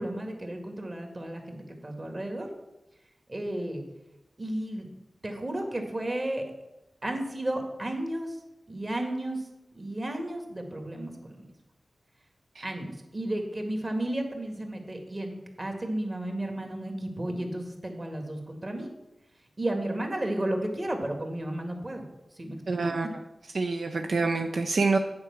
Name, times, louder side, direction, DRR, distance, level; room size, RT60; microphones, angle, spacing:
voice 1, 0.0-1.6 1.8-2.5 3.3-3.8 4.4-4.9 5.2-6.4 7.0-8.4 8.7-9.5 9.7-11.4 12.6-18.9 19.6-22.0 22.4-22.9, right 1 dB, 35° right, 3 dB, 1.9 m, -33 dB
voice 2, 22.7-23.1 23.5-25.0, right 3 dB, 70° right, 5 dB, 0.5 m, -26 dB
8.8 x 4.7 x 7.3 m, 0.97 s
cardioid pair, 60°, 0 cm